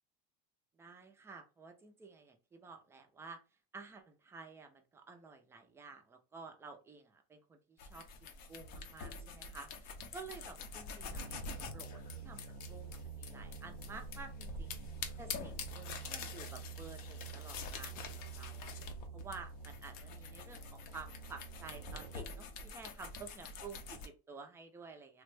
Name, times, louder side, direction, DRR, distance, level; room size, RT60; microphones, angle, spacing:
voice 1, 0.8-3.4 3.7-14.7 15.2-18.7 19.1-25.2, right 4 dB, 10° right, 5 dB, 0.4 m, -52 dB
sound 1, 7.8-24.1, left 4 dB, 45° left, 0.6 m, -46 dB
sound 2, 11.1-22.4, right 6 dB, 70° right, 0.4 m, -49 dB
3.4 x 2.1 x 3.2 m, 0.32 s
cardioid pair, 160°, 21 cm